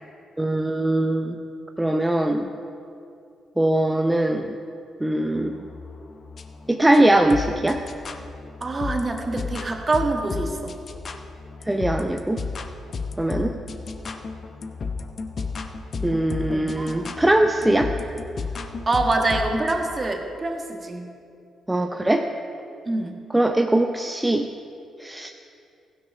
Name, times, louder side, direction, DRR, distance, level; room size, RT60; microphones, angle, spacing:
voice 1, 0.4-1.4 1.8-2.5 3.6-4.5 5.0-5.6 6.7-7.8 11.7-12.4 13.2-13.6 16.0-17.9 21.7-22.3 23.3-24.5 25.0-25.3, right 1 dB, 10° right, 4 dB, 0.7 m, -21 dB
sound 1, 5.3-19.8, left 4 dB, 50° left, 0.8 m, -34 dB
voice 2, 8.6-10.7 16.5-17.2 18.9-21.1 22.8-23.1, right 2 dB, 35° right, 3 dB, 1.5 m, -25 dB
16.0 x 9.1 x 3.5 m, 2.5 s
hypercardioid pair, 40°, 0 cm